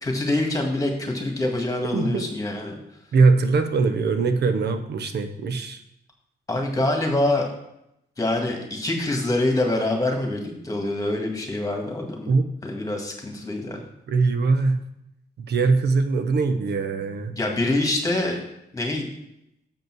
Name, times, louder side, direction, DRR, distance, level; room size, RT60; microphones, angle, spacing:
voice 1, 0.0-2.7 6.5-7.5 8.2-12.3 12.6-13.8 17.4-18.4 18.7-19.1, left 2 dB, 20° left, 2 dB, 1.8 m, -25 dB
voice 2, 1.9-2.2 3.1-5.8 12.3-12.4 14.1-14.8 15.4-17.3, right 4 dB, 75° right, 9 dB, 0.8 m, -21 dB
7.2 x 5.3 x 6.1 m, 0.81 s
wide cardioid pair, 120°, 18 cm